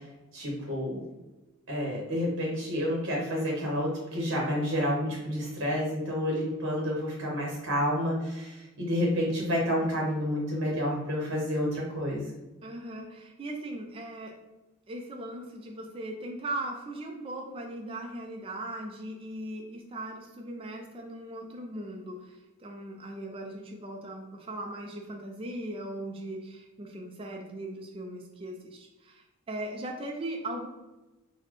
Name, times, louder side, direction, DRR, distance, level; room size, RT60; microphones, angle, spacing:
voice 1, 0.3-1.0 1.7-12.3, equal, 65° right, -3 dB, 0.9 m, -29 dB
voice 2, 12.6-14.4 14.9-30.7, right 1 dB, 25° right, 2 dB, 0.3 m, -39 dB
4.0 x 2.1 x 3.0 m, 1.1 s
head